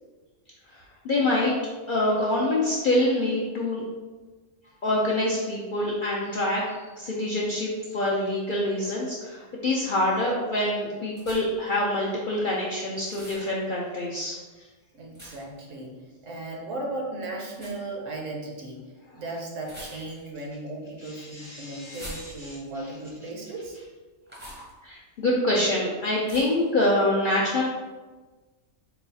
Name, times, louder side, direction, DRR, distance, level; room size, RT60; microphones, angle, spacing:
voice 1, 1.0-1.5 1.9-3.8 4.8-6.6 7.0-14.3 21.1-22.6 24.8-27.6, left 1 dB, 65° left, -4 dB, 0.5 m, -26 dB
sound 1, 11.2-11.7 13.0-13.5 15.1-15.6 17.5-17.8 19.6-20.3 21.8-22.7 24.3-24.7 26.3-26.7, right 1 dB, 10° right, 0.5 m, -44 dB
voice 2, 14.9-23.8, right 2 dB, 70° right, 0 dB, 1.0 m, -36 dB
4.0 x 2.3 x 3.9 m, 1.3 s
omnidirectional pair, 1.4 m